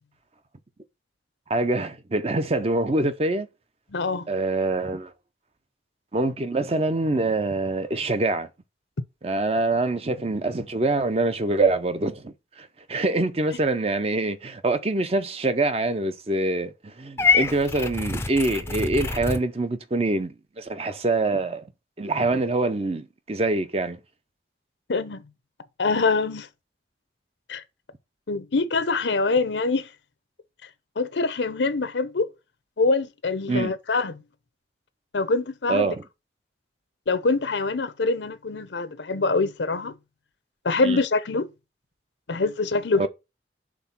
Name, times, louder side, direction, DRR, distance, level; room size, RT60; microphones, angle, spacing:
voice 1, 1.5-3.5 4.3-5.1 6.1-8.5 9.2-21.7 22.0-24.0 33.5-33.7 35.7-36.0 40.8-41.0 43.0-43.1, right 2 dB, 35° right, 0.6 m, -25 dB
voice 2, 3.9-4.3 24.9-25.2 25.8-26.5 27.5-27.6 28.3-29.9 31.0-32.3 32.8-34.2 35.1-36.0 37.1-39.9 40.6-41.5 42.3-43.1, left 3 dB, 80° left, 0.7 m, -24 dB
Purr / Meow, 17.2-19.4, left 4 dB, 15° left, 0.5 m, -25 dB
6.0 x 3.7 x 5.8 m
head